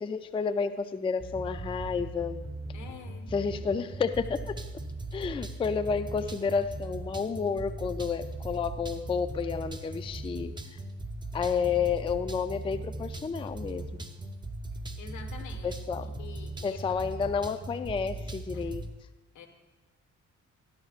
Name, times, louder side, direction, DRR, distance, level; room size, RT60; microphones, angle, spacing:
voice 1, 0.0-2.4 3.3-4.5 5.1-10.5 11.3-14.0 15.6-16.1 16.6-18.8, left 6 dB, 20° left, 11 dB, 0.4 m, -30 dB
sound 1, 1.2-18.9, right 2 dB, 15° right, 0.7 m, -39 dB
voice 2, 2.7-3.3 15.0-15.7 16.0-17.0 18.5-18.7 19.3-19.5, left 6 dB, 80° left, 5 dB, 1.4 m, -47 dB
13.5 x 11.0 x 2.4 m, 1.1 s
cardioid pair, 90°, 30 cm